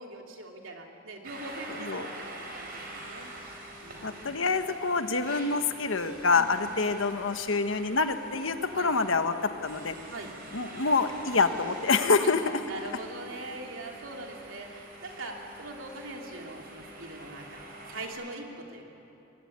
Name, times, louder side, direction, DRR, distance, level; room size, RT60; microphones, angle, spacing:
voice 1, 0.0-3.3 3.8-4.3 6.3-6.7 8.8-8.9 10.1-10.3 12.2-12.3 12.7-18.9, right 2 dB, 75° right, 1 dB, 3.2 m, -42 dB
sound 1, 1.2-18.1, right 1 dB, 50° right, 5.0 m, -45 dB
voice 2, 4.0-10.0 10.5-12.6, left 4 dB, 75° left, 8 dB, 1.4 m, -26 dB
22.0 x 18.5 x 10.0 m, 2.9 s
head